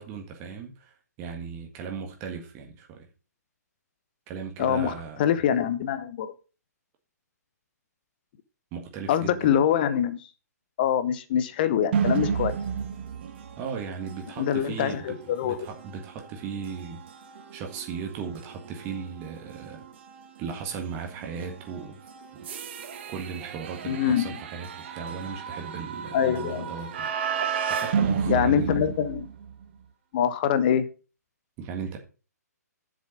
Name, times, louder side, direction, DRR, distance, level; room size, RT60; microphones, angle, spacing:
voice 1, 0.0-3.1 4.3-5.3 8.7-9.6 13.6-17.0 17.5-19.8 20.4-22.0 23.1-27.1 27.7-28.9 31.6-32.0, right 6 dB, 25° right, 1.7 m, -37 dB
voice 2, 4.6-4.9 5.2-6.3 9.1-10.2 10.8-12.6 14.4-15.6 23.9-24.3 26.1-26.7 28.3-29.3 30.1-30.8, left 9 dB, 35° left, 0.9 m, -24 dB
sound 1, 11.9-29.6, right 7 dB, 40° right, 1.3 m, -33 dB
7.4 x 7.3 x 5.1 m
figure-of-eight pair, 130°, 9 cm